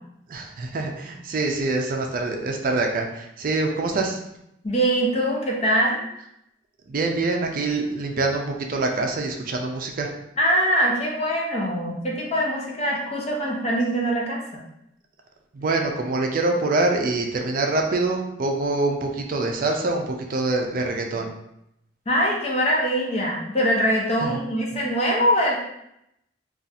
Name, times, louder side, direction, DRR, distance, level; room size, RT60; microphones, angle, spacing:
voice 1, 0.3-4.2 6.9-10.1 15.5-21.3 24.2-24.4, right 2 dB, 50° right, 2 dB, 0.4 m, -25 dB
voice 2, 4.6-6.0 10.4-14.4 22.1-25.6, equal, 35° left, -2 dB, 0.7 m, -23 dB
2.5 x 2.4 x 4.0 m, 0.80 s
head